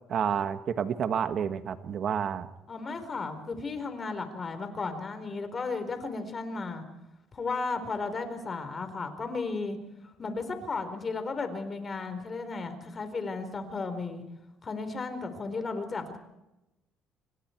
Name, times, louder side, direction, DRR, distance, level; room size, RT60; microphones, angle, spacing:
voice 1, 0.1-2.5, right 8 dB, 50° right, 10 dB, 1.5 m, -29 dB
voice 2, 2.7-6.8 7.3-9.8 10.2-14.2 14.6-16.2, left 4 dB, 30° left, 8 dB, 4.4 m, -34 dB
28.0 x 24.5 x 4.6 m, 0.96 s
cardioid pair, 105°, 0 cm